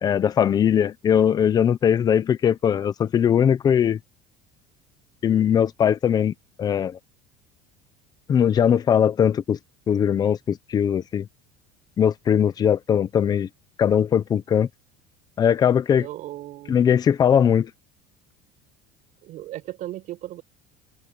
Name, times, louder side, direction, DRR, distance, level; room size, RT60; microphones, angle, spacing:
voice 1, 0.0-4.0 5.2-6.3 6.6-7.0 8.3-9.6 9.9-11.3 12.0-13.5 13.8-14.7 15.4-16.1 16.7-17.7, left 8 dB, 20° left, 0.7 m, -20 dB
voice 2, 15.9-16.8 19.2-20.4, right 14 dB, 40° right, 6.1 m, -36 dB
open air
cardioid pair, 175°, 19 cm